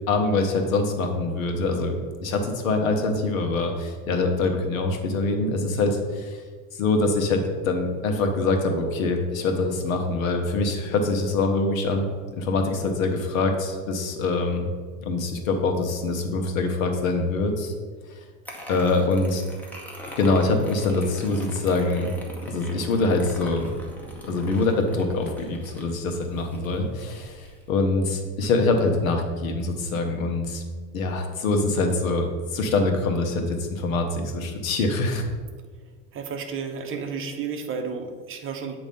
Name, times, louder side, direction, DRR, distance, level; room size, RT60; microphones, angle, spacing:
voice 1, 0.1-6.4 6.7-12.1 12.3-14.7 15.0-17.7 18.2-18.3 18.7-19.4 20.2-22.1 22.4-23.7 24.2-30.6 30.9-35.2, left 3 dB, 90° left, 4 dB, 1.1 m, -24 dB
sound 1, 18.5-27.7, equal, 5° left, 1.1 m, -42 dB
voice 2, 36.1-38.8, right 5 dB, 30° right, 5 dB, 0.8 m, -32 dB
8.5 x 3.0 x 5.3 m, 1.5 s
supercardioid pair, 115°, 40 cm